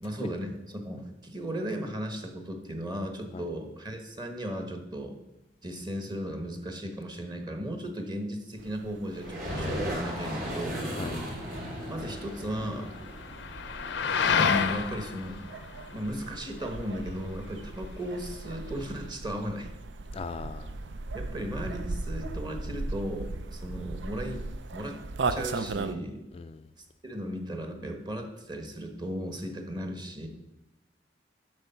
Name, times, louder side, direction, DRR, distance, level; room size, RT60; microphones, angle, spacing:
voice 1, 0.0-5.2 5.6-11.0 11.9-13.0 14.1-15.4 15.9-19.7 21.1-24.4 24.7-25.0 25.3-26.2 27.0-30.3, equal, 25° right, 4 dB, 1.2 m, -36 dB
sound 1, 8.6-26.0, right 3 dB, 75° right, 0.5 m, -38 dB
sound 2, 9.1-19.1, left 6 dB, 75° left, 0.6 m, -33 dB
sound 3, 9.2-14.8, equal, 55° right, 3.3 m, -36 dB
voice 2, 10.9-11.2 20.1-20.9 26.3-26.7, left 4 dB, 30° left, 8 dB, 0.3 m, -39 dB
8.1 x 6.2 x 5.7 m, 0.94 s
head